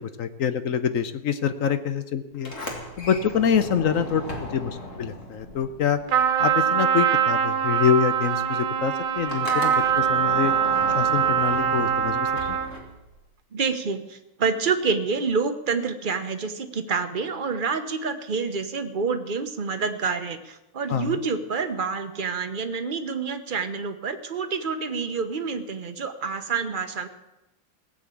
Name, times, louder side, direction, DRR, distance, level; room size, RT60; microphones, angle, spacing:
voice 1, 0.2-2.5 3.0-6.0 6.4-10.5 10.9-12.6 20.9-21.2, left 7 dB, 60° left, 11 dB, 0.9 m, -25 dB
Sliding door, 2.3-6.6 6.9-13.3, left 2 dB, 40° left, 2.5 m, -37 dB
Trumpet, 6.1-12.8, right 8 dB, 75° right, 1.7 m, -23 dB
voice 2, 13.5-27.1, right 5 dB, 40° right, 8 dB, 0.8 m, -28 dB
17.0 x 7.7 x 8.4 m, 0.96 s
omnidirectional pair, 2.0 m